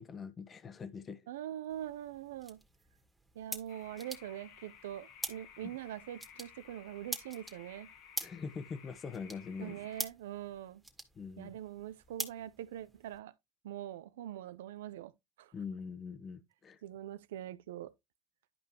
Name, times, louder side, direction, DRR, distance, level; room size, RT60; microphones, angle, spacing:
voice 1, 0.0-1.3 5.6-5.7 8.2-9.8 11.1-11.6 15.5-16.8, left 5 dB, 35° left, 1.1 m, -43 dB
voice 2, 1.3-2.6 3.3-7.9 9.6-10.8 11.4-13.3 13.6-15.1 15.4-15.5 16.8-17.9, right 12 dB, 85° right, 0.6 m, -43 dB
sound 1, 1.7-13.2, right 2 dB, 5° right, 1.9 m, -46 dB
sound 2, 3.7-10.1, left 8 dB, 70° left, 1.5 m, -57 dB
11.5 x 5.2 x 2.9 m
hypercardioid pair, 85°, 0 cm